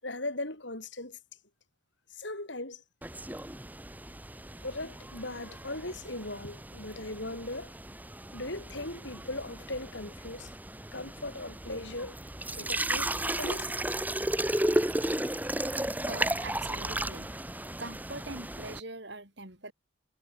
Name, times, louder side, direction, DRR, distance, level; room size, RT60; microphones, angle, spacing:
voice 1, 0.0-1.2 2.1-2.8 4.6-7.7 8.3-10.5 10.9-12.2 12.6-13.7, left 2 dB, 65° left, 6.2 m, -38 dB
sound 1, 3.0-18.8, right 1 dB, 10° right, 2.1 m, -34 dB
voice 2, 16.0-17.3 17.8-19.7, right 2 dB, 55° right, 6.1 m, -42 dB
head